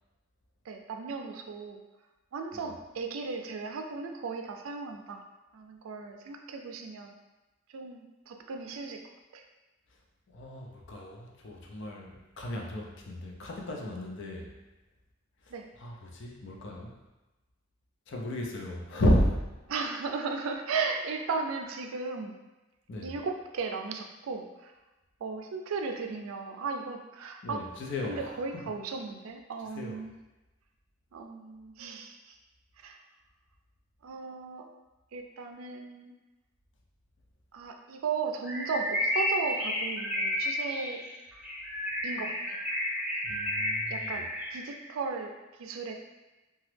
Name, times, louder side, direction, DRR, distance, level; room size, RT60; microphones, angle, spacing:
voice 1, 0.7-1.8 2.3-5.2 5.5-7.1 7.7-9.0 9.3-9.4 15.5-15.7 19.7-22.4 23.0-24.7 25.2-27.6 28.1-30.1 31.1-32.3 32.8-33.0 34.0-34.7 35.1-36.1 37.5-41.0 42.0-42.6 43.9-45.3 45.6-45.9, right 4 dB, 85° right, 4 dB, 0.4 m, -36 dB
voice 2, 10.3-14.5 15.8-17.0 18.1-19.4 22.9-23.1 27.4-28.7 29.7-30.0 43.2-44.1, left 1 dB, 65° left, 0 dB, 0.5 m, -33 dB
Bird, 38.4-44.8, left 1 dB, 5° right, 0.6 m, -32 dB
2.9 x 2.3 x 3.2 m, 1.1 s
head